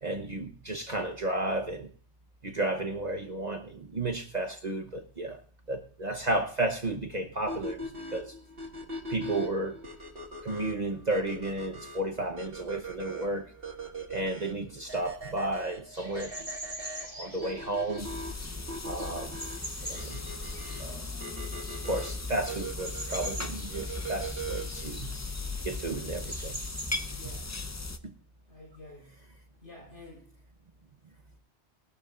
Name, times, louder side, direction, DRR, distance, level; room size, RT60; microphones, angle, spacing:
voice 1, 0.0-1.9 2.4-5.4 5.7-8.3 9.1-9.8 10.4-13.5 14.1-16.5 17.0-18.1 18.8-19.4 19.8-20.2 20.8-21.1 21.8-25.2 25.6-26.6 27.2-27.3 28.0-28.1, right 2 dB, 40° right, 4 dB, 1.0 m, -33 dB
sound 1, 7.5-24.9, right 1 dB, 55° right, 2.1 m, -41 dB
sound 2, 15.9-27.4, equal, 25° right, 6.7 m, -45 dB
sound 3, 18.0-28.0, left 3 dB, 20° left, 0.5 m, -37 dB
voice 2, 27.1-27.6 28.5-29.1 29.6-30.4, left 2 dB, 80° left, -1 dB, 5.1 m, -50 dB
20.0 x 12.5 x 2.5 m, 0.42 s
omnidirectional pair, 1.2 m